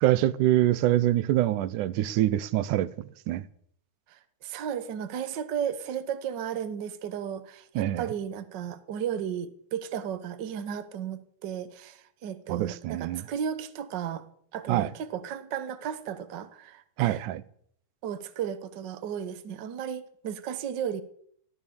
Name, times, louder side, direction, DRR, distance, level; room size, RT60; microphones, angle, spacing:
voice 1, 0.0-2.9 3.3-3.5 7.8-8.1 12.5-13.2 14.7-14.9 17.0-17.4, right 14 dB, 85° right, 2.3 m, -25 dB
voice 2, 4.1-14.3 14.5-17.3 18.0-21.0, right 8 dB, 65° right, 1.0 m, -34 dB
14.5 x 12.5 x 6.8 m
omnidirectional pair, 3.5 m